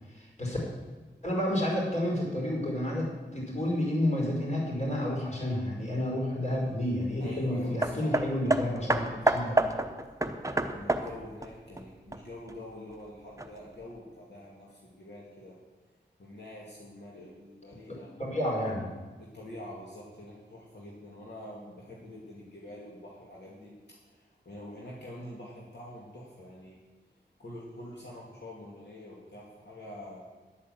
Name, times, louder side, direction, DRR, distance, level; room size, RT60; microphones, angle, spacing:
voice 1, 0.1-0.6 1.2-9.6 17.9-18.9, left 1 dB, 40° left, -3 dB, 5.1 m, -30 dB
voice 2, 7.2-9.6 10.7-15.6 16.2-18.1 19.2-26.8 27.4-30.3, left 1 dB, 70° left, -4 dB, 2.4 m, -45 dB
Hammer, 7.8-12.5 13.4-13.5, right 2 dB, 15° right, 0.8 m, -29 dB
10.5 x 8.7 x 7.8 m, 1.3 s
wide cardioid pair, 80°, 18 cm